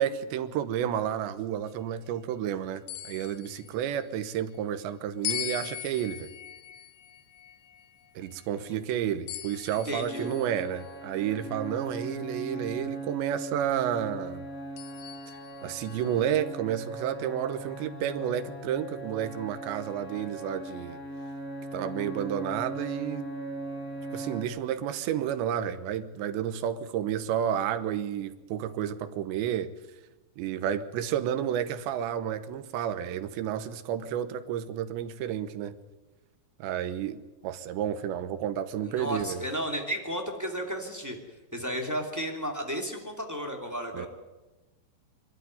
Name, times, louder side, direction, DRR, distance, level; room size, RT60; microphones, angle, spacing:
voice 1, 0.0-6.3 8.2-14.4 15.6-21.0 21.7-23.3 24.1-29.7 30.4-35.7 36.6-39.4 43.9-44.1, right 10 dB, 75° right, 3.1 m, -31 dB
sound 1, 2.9-4.4 5.2-8.7 9.3-11.0 11.7-11.8 14.8-16.2, left 12 dB, 75° left, 3.2 m, -40 dB
voice 2, 9.7-10.3 38.8-41.2 41.5-44.1, equal, 10° right, 1.2 m, -33 dB
sound 2, 10.0-24.4, right 1 dB, 25° left, 6.9 m, -39 dB
25.5 x 13.0 x 9.4 m
omnidirectional pair, 5.6 m